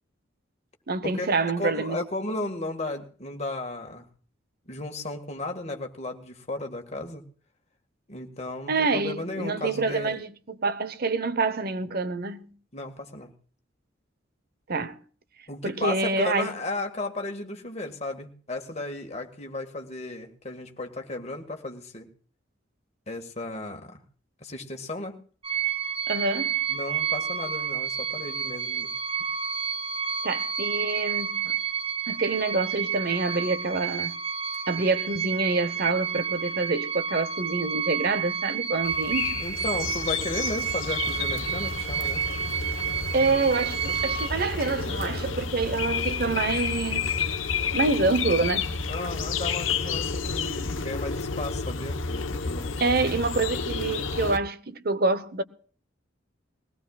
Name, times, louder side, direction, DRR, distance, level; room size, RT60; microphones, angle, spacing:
voice 1, 0.9-2.0 8.7-12.5 14.7-15.0 15.6-16.5 26.1-26.6 30.2-31.6 32.1-34.1 34.7-39.4 43.1-47.2 47.7-48.7 52.8-55.4, right 3 dB, 50° right, 1.0 m, -27 dB
voice 2, 1.6-4.1 4.7-7.2 8.1-10.2 12.7-13.3 15.5-22.1 23.1-24.0 24.4-25.2 26.7-28.9 39.4-42.2 48.9-53.1, left 2 dB, 35° left, 1.8 m, -34 dB
sound 1, 25.4-44.3, right 7 dB, 30° right, 0.7 m, -30 dB
sound 2, 38.8-54.4, left 5 dB, 90° left, 1.0 m, -30 dB
21.5 x 18.0 x 2.4 m
head